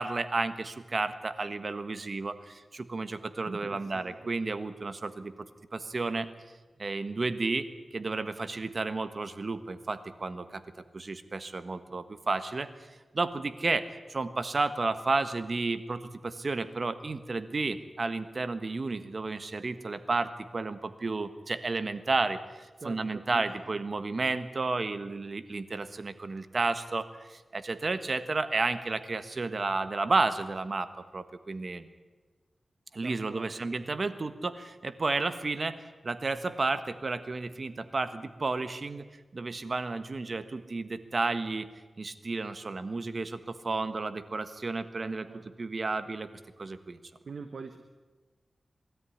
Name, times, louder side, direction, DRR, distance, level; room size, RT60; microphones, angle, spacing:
voice 1, 0.0-5.3 5.7-6.3 6.8-10.6 10.9-12.7 13.1-31.9 32.9-39.0 39.3-41.7 42.0-45.3 45.6-46.3 46.6-47.0, right 3 dB, 50° right, 11 dB, 1.4 m, -32 dB
voice 2, 3.5-4.3 22.8-23.8 33.0-33.7 45.0-45.6 47.3-47.8, right 4 dB, 70° right, 7 dB, 1.2 m, -44 dB
20.0 x 13.5 x 9.7 m, 1.3 s
wide cardioid pair, 65°, 0 cm